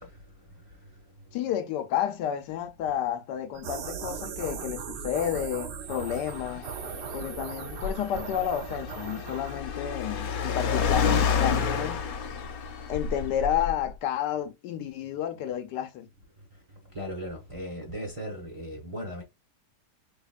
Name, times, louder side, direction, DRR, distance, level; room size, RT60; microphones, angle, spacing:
voice 1, 1.3-6.7 7.1-12.1 12.9-16.1, left 10 dB, 85° left, 1.3 m, -31 dB
sound 1, 3.5-9.6, right 7 dB, 90° right, 0.6 m, -38 dB
Car, 6.0-13.9, left 6 dB, 65° left, 1.1 m, -30 dB
voice 2, 16.9-19.2, equal, 25° right, 0.9 m, -37 dB
4.1 x 2.9 x 2.4 m
omnidirectional pair, 1.8 m